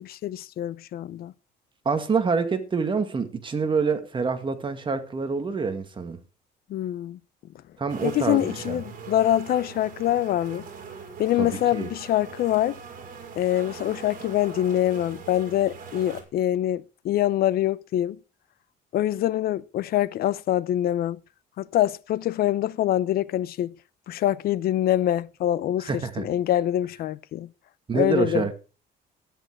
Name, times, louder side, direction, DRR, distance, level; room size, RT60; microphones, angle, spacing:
voice 1, 0.0-1.3 6.7-7.2 8.0-10.7 11.2-12.8 13.4-18.2 18.9-21.2 21.6-23.7 24.1-25.9 26.2-27.5 27.9-28.5, left 12 dB, 65° left, 0.8 m, -25 dB
voice 2, 1.9-6.2 7.8-8.8 11.4-11.9 25.8-26.3 27.9-28.5, right 5 dB, 30° right, 2.1 m, -26 dB
sound 1, 7.9-16.2, right 6 dB, 55° right, 5.2 m, -41 dB
13.5 x 10.5 x 4.7 m
cardioid pair, 110°, 17 cm